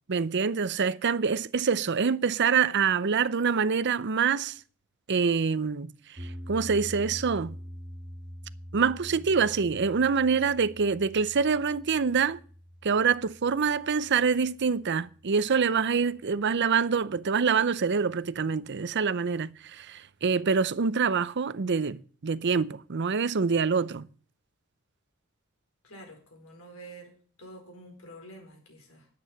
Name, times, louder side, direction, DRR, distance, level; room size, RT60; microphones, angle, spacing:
voice 1, 0.1-4.5 5.1-5.9 6.5-7.6 8.7-12.4 12.8-24.1, right 5 dB, 55° right, 0.6 m, -25 dB
sound 1, 6.2-16.4, equal, 25° right, 1.1 m, -45 dB
voice 2, 9.1-9.6 10.4-10.5 25.8-29.1, right 1 dB, 80° left, 4.6 m, -49 dB
10.5 x 8.6 x 7.7 m
head